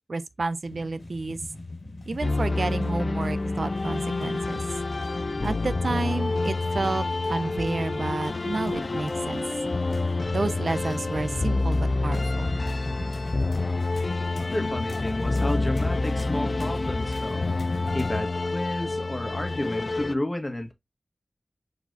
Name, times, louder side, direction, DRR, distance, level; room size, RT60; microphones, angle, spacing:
voice 1, 0.1-1.4 2.1-4.6 5.4-9.4 10.3-12.6, right 3 dB, 75° right, 0.4 m, -30 dB
sound 1, 0.6-18.2, left 2 dB, 80° left, 1.4 m, -38 dB
sound 2, 2.2-20.1, left 3 dB, 60° left, 0.4 m, -28 dB
voice 2, 14.3-17.5 17.9-20.7, left 1 dB, 30° left, 1.5 m, -31 dB
4.7 x 4.0 x 2.7 m
cardioid pair, 40°, 0 cm